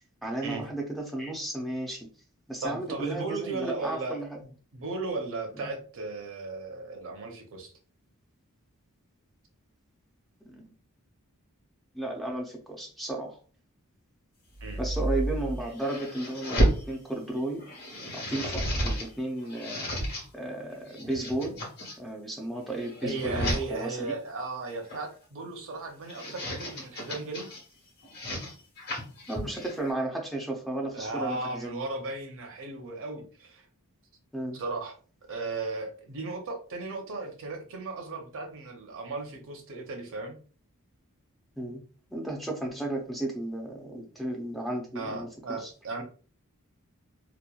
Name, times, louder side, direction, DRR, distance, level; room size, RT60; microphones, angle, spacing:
voice 1, 0.2-2.1 2.5-4.4 5.6-5.7 10.5-10.7 11.9-13.4 14.8-17.7 18.1-19.9 20.3-21.6 22.0-24.2 29.3-31.8 34.3-34.6 41.6-41.8 42.1-45.7, right 1 dB, ahead, -1 dB, 0.4 m, -34 dB
voice 2, 2.6-4.2 4.4-7.7 14.6-14.8 23.0-27.5 30.9-33.7 34.5-34.9 35.3-40.4 44.9-46.0, right 3 dB, 60° right, 4 dB, 0.6 m, -36 dB
sound 1, 14.6-16.8 17.3-19.1 19.4-20.2 20.8-21.9 22.6-23.6 24.7-25.1 25.9-27.6 28.0-29.9, right 1 dB, 45° left, 1.2 m, -31 dB
2.9 x 2.1 x 2.3 m, 0.40 s
head